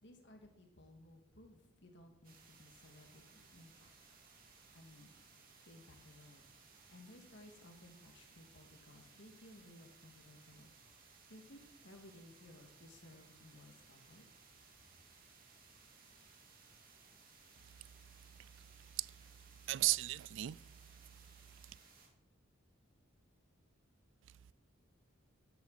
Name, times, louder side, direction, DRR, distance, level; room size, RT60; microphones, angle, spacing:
voice 1, 0.0-4.2 4.7-5.1 5.6-6.4 6.9-10.7 11.3-14.3, left 1 dB, 55° left, 2.0 m, -59 dB
sound 1, 2.2-22.1, right 5 dB, 45° right, 2.2 m, -63 dB
voice 2, 18.9-19.2 19.7-20.6, right 17 dB, 60° right, 0.3 m, -35 dB
13.0 x 10.5 x 4.2 m
head